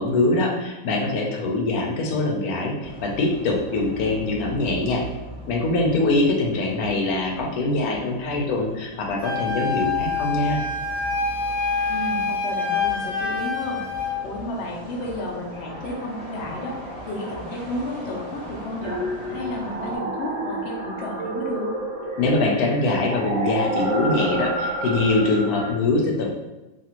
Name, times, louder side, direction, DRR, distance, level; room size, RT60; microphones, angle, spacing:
voice 1, 0.0-5.0 5.5-10.6 22.2-26.3, left 2 dB, 85° left, 0 dB, 1.1 m, -23 dB
sound 1, 2.8-20.0, right 1 dB, 30° right, 0.5 m, -40 dB
Wind instrument woodwind instrument, 9.2-14.2, left 4 dB, 30° left, 0.6 m, -26 dB
voice 2, 11.9-13.8 14.2-16.8 17.1-19.0 19.3-21.7, left 1 dB, 55° left, -2 dB, 0.8 m, -32 dB
sound 2, 18.8-25.7, right 2 dB, 65° right, 1.1 m, -29 dB
2.7 x 2.5 x 2.9 m, 1.1 s
omnidirectional pair, 1.5 m